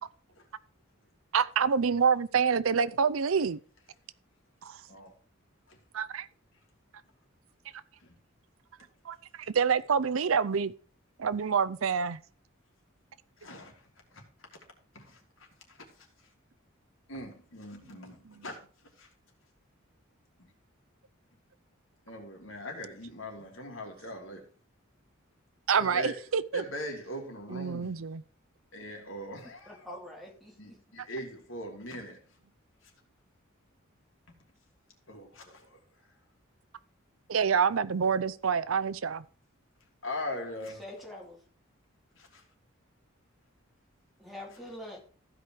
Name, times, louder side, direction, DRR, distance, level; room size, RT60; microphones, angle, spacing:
voice 1, 1.3-3.6 4.6-4.8 5.9-6.3 9.0-10.7 11.2-12.2 18.3-18.4 25.7-26.6 27.5-28.2 37.3-39.2, right 6 dB, 80° right, 0.6 m, -27 dB
voice 2, 13.4-13.8 14.1-14.2 14.9-16.1 17.1-18.6 19.0-19.1 20.4-20.5 22.1-24.5 25.8-26.2 26.5-28.0 28.7-29.9 30.6-32.2 35.1-35.8 40.0-40.8 42.2-42.4, left 1 dB, 70° left, 3.0 m, -41 dB
voice 3, 29.7-30.8 40.8-41.4 44.2-45.0, left 1 dB, ahead, 2.8 m, -44 dB
15.0 x 5.1 x 4.6 m
head